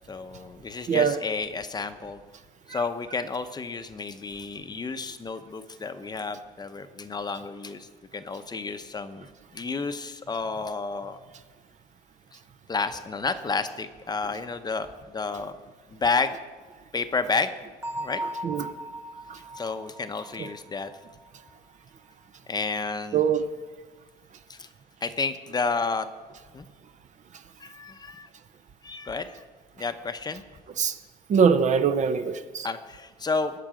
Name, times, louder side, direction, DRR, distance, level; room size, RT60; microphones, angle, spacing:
voice 1, 0.1-2.2 2.7-9.3 9.5-11.2 12.7-15.5 15.9-16.4 16.9-17.5 18.0-18.2 19.5-20.9 22.5-23.3 24.5-24.7 25.0-26.1 26.5-26.7 27.6-28.3 28.8-29.4 29.8-30.4 32.6-33.5, left 4 dB, 25° left, 0.8 m, -31 dB
voice 2, 0.9-1.2 2.7-2.8 18.4-18.7 19.3-19.4 20.4-20.5 23.1-23.4 30.8-31.0 31.3-32.7, right 6 dB, 45° right, 0.7 m, -23 dB
Bell, 17.8-21.5, right 1 dB, 20° right, 2.0 m, -38 dB
19.0 x 6.8 x 5.0 m
cardioid pair, 110°, 17 cm